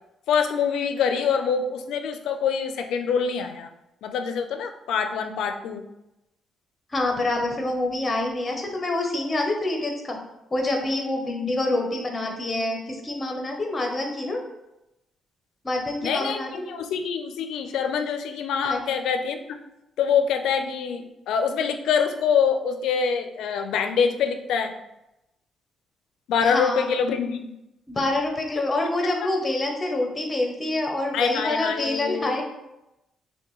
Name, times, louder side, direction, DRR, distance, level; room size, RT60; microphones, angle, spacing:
voice 1, 0.3-3.7 4.0-5.8 16.0-19.6 20.0-24.7 26.3-27.5 31.1-32.4, left 6 dB, 80° left, 7 dB, 0.4 m, -25 dB
voice 2, 6.9-10.2 10.5-14.4 15.6-16.7 18.6-18.8 26.4-26.9 27.9-32.4, left 2 dB, 20° left, 2 dB, 0.7 m, -26 dB
5.7 x 2.2 x 3.1 m, 0.91 s
cardioid pair, 170°, 0 cm